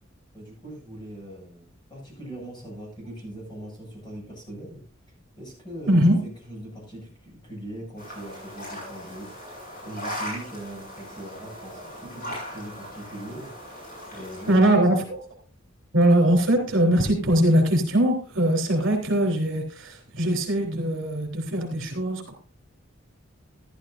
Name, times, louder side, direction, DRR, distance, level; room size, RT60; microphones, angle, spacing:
voice 1, 0.3-4.8 5.4-6.0 6.5-9.3 9.8-13.5 14.1-15.1, right 1 dB, 20° left, -2 dB, 7.6 m, -40 dB
voice 2, 5.9-6.2 14.5-15.2 15.9-22.3, right 1 dB, 65° right, 2 dB, 3.7 m, -21 dB
sound 1, 8.0-14.5, equal, 45° left, 7.1 m, -38 dB
14.0 x 12.5 x 2.6 m, 0.36 s
head